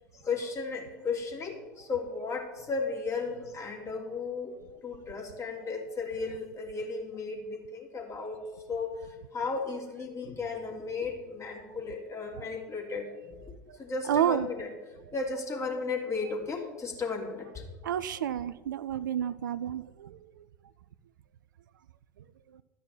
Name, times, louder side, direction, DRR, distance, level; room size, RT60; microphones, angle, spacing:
voice 1, 0.1-4.5 4.8-8.4 8.7-13.3 13.8-14.7 15.1-17.6, left 4 dB, 30° left, 0 dB, 3.3 m, -35 dB
voice 2, 14.1-14.5 17.8-20.2, right 10 dB, 75° right, 15 dB, 0.5 m, -30 dB
13.0 x 5.7 x 9.3 m, 1.2 s
figure-of-eight pair, 70°, 11 cm